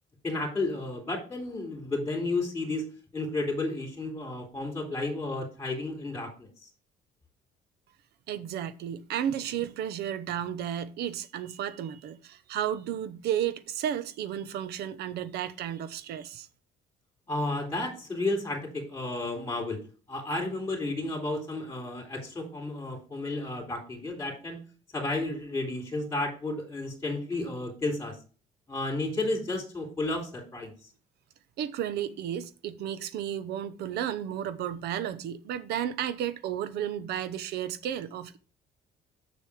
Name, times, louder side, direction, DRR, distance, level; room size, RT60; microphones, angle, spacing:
voice 1, 0.2-6.5 17.3-19.8 20.1-24.6 24.9-28.2 28.7-30.7, left 2 dB, 15° left, 3.1 m, -32 dB
voice 2, 8.3-16.5 31.6-38.4, right 10 dB, 75° right, 0.9 m, -33 dB
6.9 x 6.3 x 4.9 m
cardioid pair, 110°, 17 cm